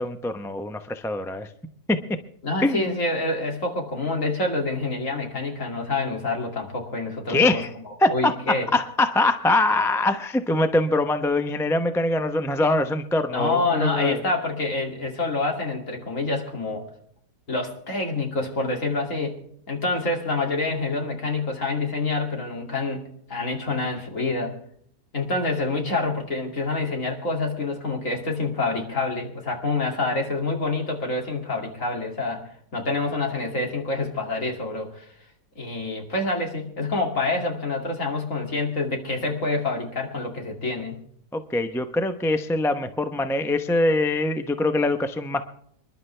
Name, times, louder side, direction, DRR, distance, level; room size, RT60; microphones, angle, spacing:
voice 1, 0.0-1.5 1.9-2.2 2.6-2.9 7.3-7.7 8.0-14.2 41.3-45.5, left 2 dB, 5° left, 8 dB, 0.5 m, -23 dB
voice 2, 2.4-7.6 8.1-8.6 13.3-16.8 17.5-19.4 19.7-23.0 23.3-24.5 25.1-35.1 35.6-40.9, left 3 dB, 50° left, 2 dB, 3.0 m, -27 dB
27.0 x 11.5 x 3.4 m, 0.67 s
omnidirectional pair, 1.8 m